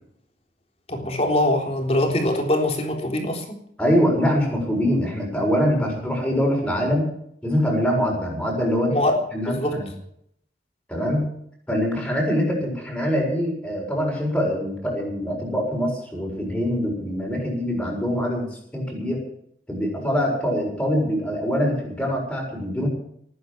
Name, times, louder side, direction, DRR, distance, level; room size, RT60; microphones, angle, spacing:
voice 1, 0.9-3.6 8.9-9.1 9.5-9.9, left 1 dB, 35° left, 2 dB, 3.7 m, -23 dB
voice 2, 3.8-7.1 7.4-8.9 9.3-9.9 10.9-11.3 11.7-18.5 18.7-19.2 19.7-22.9, equal, 5° left, -2 dB, 6.9 m, -23 dB
20.0 x 9.8 x 7.4 m, 0.71 s
head